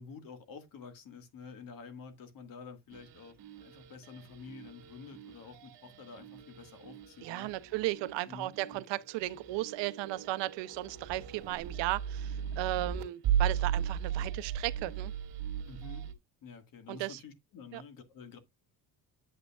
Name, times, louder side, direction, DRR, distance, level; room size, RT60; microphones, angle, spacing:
voice 1, 0.0-3.4 3.6-7.6 8.3-8.8 15.6-16.1 16.4-18.4, left 5 dB, 50° left, 1.8 m, -49 dB
sound 1, 2.9-16.1, right 9 dB, 65° right, 2.2 m, -37 dB
voice 2, 7.2-15.1 16.9-17.2 17.7-17.8, right 17 dB, 80° right, 0.7 m, -35 dB
8.6 x 8.0 x 2.3 m
cardioid pair, 175°, 43 cm